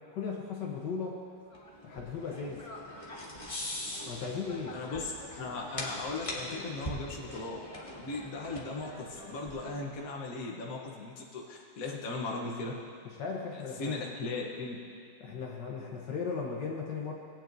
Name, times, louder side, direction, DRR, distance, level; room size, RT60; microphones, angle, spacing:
voice 1, 0.1-1.2 1.8-2.7 4.1-4.8 13.0-14.0 15.2-17.1, left 5 dB, 70° left, -1 dB, 1.6 m, -37 dB
sound 1, 1.5-10.1, left 1 dB, 20° left, 1.1 m, -42 dB
voice 2, 4.7-5.1 5.4-7.6 7.9-12.7 13.5-14.8, left 3 dB, 55° left, -1 dB, 1.3 m, -38 dB
19.0 x 8.8 x 2.6 m, 2.4 s
omnidirectional pair, 2.0 m